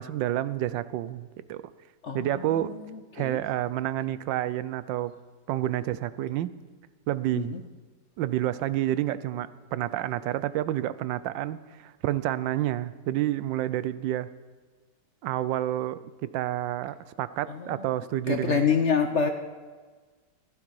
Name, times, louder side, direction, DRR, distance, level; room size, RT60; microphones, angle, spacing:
voice 1, 0.0-1.6 2.1-2.8 3.1-5.1 5.5-6.5 7.1-7.5 8.2-14.3 15.2-18.7, right 13 dB, 90° right, 15 dB, 1.3 m, -29 dB
voice 2, 2.0-2.8 3.2-3.4 7.3-7.6 17.5-17.9 18.3-19.3, left 6 dB, 55° left, 6 dB, 0.8 m, -27 dB
15.5 x 11.5 x 4.7 m, 1.4 s
omnidirectional pair, 1.9 m